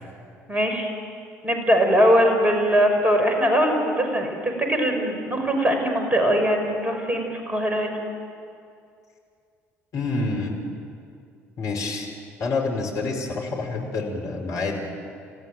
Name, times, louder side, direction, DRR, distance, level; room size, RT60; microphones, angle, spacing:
voice 1, 0.5-0.9 1.4-8.0, equal, 20° right, 4 dB, 6.2 m, -21 dB
voice 2, 9.9-10.6 11.6-12.1 12.4-14.8, left 3 dB, 50° left, 1 dB, 5.2 m, -27 dB
30.0 x 15.0 x 9.2 m, 2.3 s
figure-of-eight pair, 55°, 7 cm